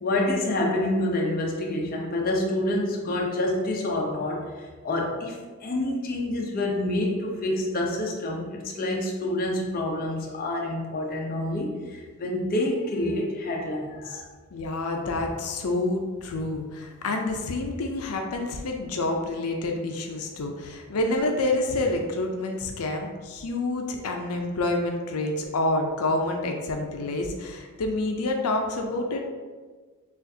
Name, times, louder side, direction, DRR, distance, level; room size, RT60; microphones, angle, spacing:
voice 1, 0.0-14.3, left 1 dB, 40° left, -1 dB, 0.6 m, -27 dB
voice 2, 14.5-29.3, left 2 dB, 85° left, 3 dB, 0.5 m, -28 dB
6.3 x 2.5 x 2.7 m, 1.4 s
head